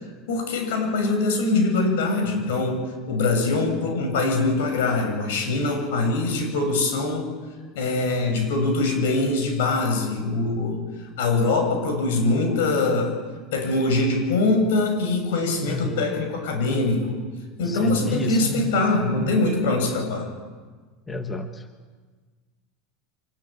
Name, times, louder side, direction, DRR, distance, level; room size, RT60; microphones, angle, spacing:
voice 1, 0.3-7.3 7.7-10.8 11.2-13.2 13.5-17.2 17.6-20.3, left 3 dB, 80° left, 5 dB, 7.8 m, -23 dB
voice 2, 15.7-16.0 17.6-18.7 21.1-21.7, left 2 dB, 10° left, 7 dB, 1.1 m, -30 dB
25.0 x 21.0 x 9.3 m, 1.4 s
supercardioid pair, 175°, 0 cm